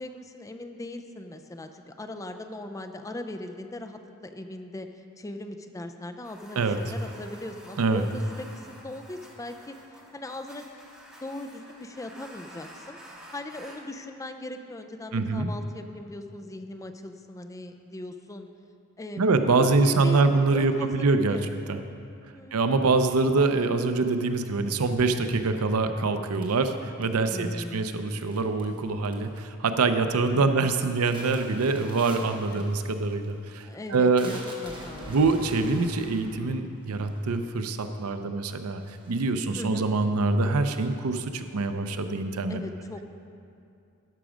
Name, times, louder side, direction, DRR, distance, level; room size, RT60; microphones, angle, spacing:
voice 1, 0.0-4.9 5.2-9.8 10.1-10.7 11.2-13.0 13.3-18.5 19.0-19.3 19.6-20.2 20.5-21.5 21.8-21.9 22.3-22.6 27.3-27.9 30.3-30.5 32.5-32.6 33.6-35.2 39.5-39.9 42.5-43.0, left 1 dB, 15° left, 6 dB, 0.4 m, -39 dB
sound 1, 6.2-13.8, equal, 5° right, 1.5 m, -49 dB
voice 2, 15.1-15.5 19.2-21.4 21.7-21.8 22.5-34.3 35.1-38.8 39.1-42.6, right 3 dB, 85° right, 8 dB, 0.6 m, -25 dB
sound 2, 26.3-27.4 28.2-28.8 29.0-29.6 29.9-30.3 30.7-37.7 38.4-38.5 38.8-40.4, right 1 dB, 20° right, 1.3 m, -46 dB
12.5 x 6.0 x 5.0 m, 2.5 s
head